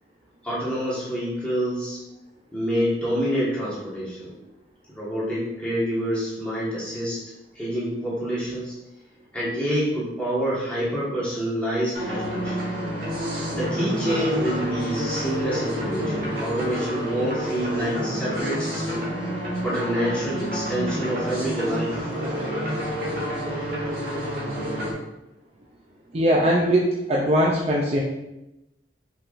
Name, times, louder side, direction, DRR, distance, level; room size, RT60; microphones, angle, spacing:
voice 1, 0.4-2.0 2.5-4.3 4.9-7.2 7.5-8.8 9.3-12.6 13.5-19.0 19.6-22.1, equal, 5° left, -9 dB, 1.4 m, -27 dB
sound 1, 11.9-24.9, equal, 50° right, 1.4 m, -29 dB
voice 2, 26.1-28.0, equal, 35° right, -3 dB, 0.4 m, -20 dB
5.5 x 3.4 x 2.5 m, 0.94 s
head